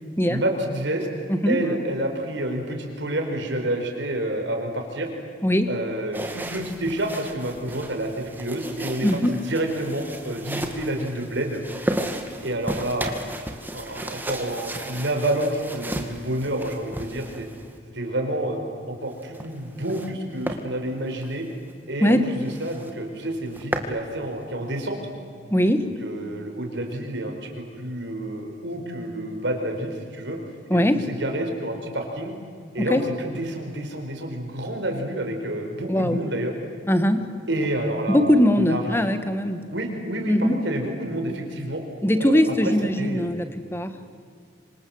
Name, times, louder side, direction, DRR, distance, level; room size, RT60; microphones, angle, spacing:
voice 1, 0.3-1.1 1.4-5.1 5.6-11.6 12.4-13.1 13.7-17.5 17.9-18.6 18.9-21.5 21.9-25.0 25.8-30.4 30.7-32.3 32.7-36.5 37.5-38.2 38.5-39.0 39.7-41.8 42.2-43.4, right 1 dB, 65° right, 3 dB, 4.8 m, -29 dB
sound 1, 6.1-17.8 19.1-20.1 20.4-20.6 21.1-21.3 21.7-21.8 22.1-22.2 22.5-22.9 23.3-24.0, right 1 dB, 10° right, 1.9 m, -34 dB
voice 2, 9.0-9.3 22.0-22.2 25.5-25.9 30.7-31.0 32.9-33.0 35.9-36.2 36.9-37.3 38.1-39.6 40.3-40.6 42.0-43.9, equal, 10° left, 9 dB, 1.4 m, -21 dB
26.5 x 26.0 x 7.9 m, 2.3 s
head